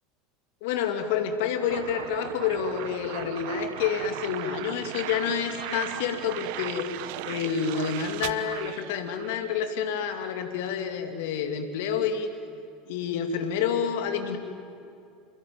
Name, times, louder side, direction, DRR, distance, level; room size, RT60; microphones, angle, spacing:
voice 1, 0.6-12.3 12.9-14.4, left 7 dB, 65° left, 6 dB, 2.5 m, -29 dB
sound 1, 1.7-9.5, right 15 dB, 60° right, 0.9 m, -37 dB
28.0 x 21.5 x 9.4 m, 2.6 s
figure-of-eight pair, 75°, 0 cm